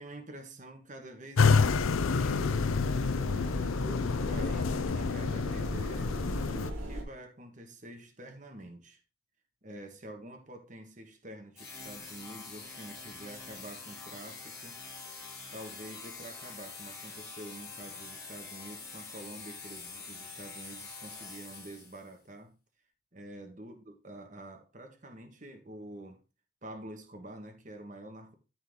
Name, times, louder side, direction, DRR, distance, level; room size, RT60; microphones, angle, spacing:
voice 1, 0.0-2.5 3.3-9.0 9.6-14.8 15.5-22.6 23.1-26.2 26.6-28.3, right 1 dB, 40° right, 1.6 m, -47 dB
sound 1, 1.4-6.7, left 5 dB, 90° left, 0.5 m, -28 dB
sound 2, 1.6-7.0, equal, 85° right, 3.3 m, -38 dB
sound 3, 11.5-22.1, left 4 dB, 15° left, 3.5 m, -45 dB
13.5 x 4.5 x 3.7 m
head